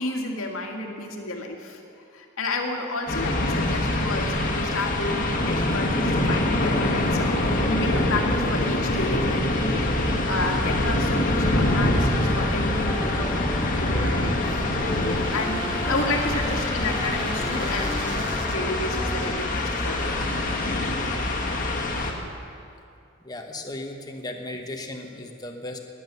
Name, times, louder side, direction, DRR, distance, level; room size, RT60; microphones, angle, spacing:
voice 1, 0.0-1.8 2.1-9.8 10.3-13.5 13.7-14.4 14.8-20.2, left 2 dB, 90° left, 1 dB, 2.0 m, -31 dB
sound 1, 3.1-22.1, left 1 dB, 40° left, 1.7 m, -25 dB
sound 2, 10.4-22.3, right 2 dB, 60° right, 1.3 m, -41 dB
sound 3, 10.7-19.4, left 1 dB, 5° left, 0.5 m, -36 dB
voice 2, 23.2-25.8, left 2 dB, 20° left, 2 dB, 1.2 m, -36 dB
18.5 x 10.5 x 7.0 m, 2.5 s
head